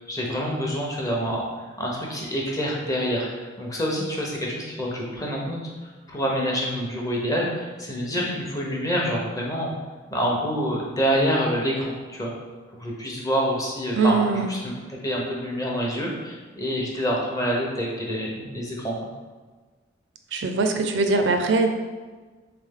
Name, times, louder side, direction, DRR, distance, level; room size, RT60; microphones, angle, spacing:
voice 1, 0.0-1.4 1.8-5.6 6.1-9.7 10.1-12.3 12.7-19.0, equal, 20° left, -2 dB, 0.7 m, -27 dB
voice 2, 13.9-14.5 20.3-21.7, right 3 dB, 70° right, 5 dB, 0.4 m, -21 dB
3.5 x 3.3 x 3.6 m, 1.3 s
head